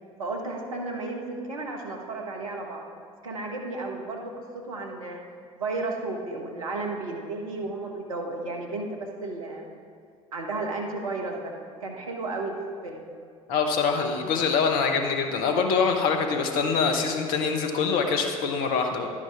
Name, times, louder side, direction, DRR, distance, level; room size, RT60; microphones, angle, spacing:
voice 1, 0.2-2.8 3.2-5.2 5.6-9.7 10.3-11.5 11.8-12.6 12.8-13.0, right 2 dB, 75° right, 1 dB, 1.2 m, -33 dB
voice 2, 13.5-19.1, left 5 dB, 55° left, 4 dB, 1.1 m, -24 dB
11.5 x 9.8 x 3.5 m, 2.3 s
figure-of-eight pair, 60°, 18 cm